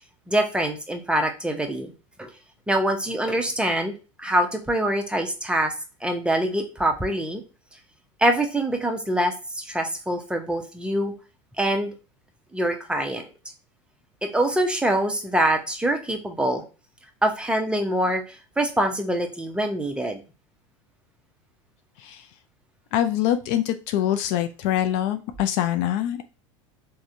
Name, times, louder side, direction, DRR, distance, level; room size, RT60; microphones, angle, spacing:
voice 1, 0.3-1.9 2.2-2.3 2.7-5.7 6.0-7.4 8.2-11.1 11.6-11.9 12.5-13.3 14.2-16.6 17.2-18.2 18.6-20.2, right 1 dB, 5° right, 3 dB, 0.6 m, -24 dB
voice 2, 22.9-26.2, left 11 dB, 55° left, 8 dB, 0.4 m, -24 dB
3.5 x 2.1 x 2.6 m, 0.31 s
hypercardioid pair, 85°, 17 cm